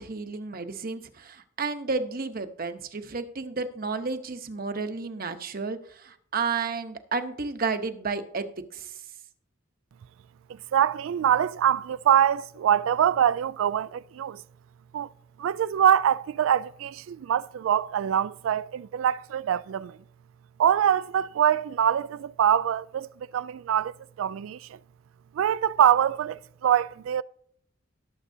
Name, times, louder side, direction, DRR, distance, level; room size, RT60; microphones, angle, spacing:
voice 1, 0.0-9.0, right 4 dB, 45° right, 0.9 m, -32 dB
voice 2, 10.7-14.4 14.9-15.1 15.4-20.0 20.6-24.8 25.4-27.2, right 9 dB, 80° right, 0.3 m, -24 dB
18.0 x 7.3 x 2.7 m
head